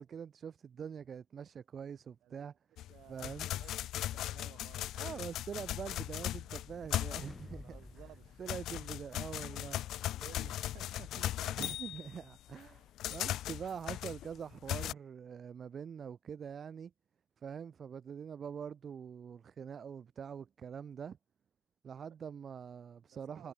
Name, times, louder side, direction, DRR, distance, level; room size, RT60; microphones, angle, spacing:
voice 1, 0.0-2.5 3.1-3.5 5.0-7.7 8.4-9.8 11.6-16.9 17.4-21.2 21.8-23.5, right 7 dB, 45° right, 0.6 m, -44 dB
sound 1, 2.8-7.6 8.0-14.9, left 13 dB, 75° left, 0.3 m, -38 dB
voice 2, 2.9-5.1 7.5-8.5 10.2-11.6 22.0-22.2 23.1-23.5, right 13 dB, 75° right, 2.9 m, -57 dB
Bell, 3.6-19.1, right 3 dB, 15° right, 5.8 m, -79 dB
sound 2, 6.1-9.3, left 2 dB, 10° left, 0.8 m, -54 dB
cardioid pair, 115°, 0 cm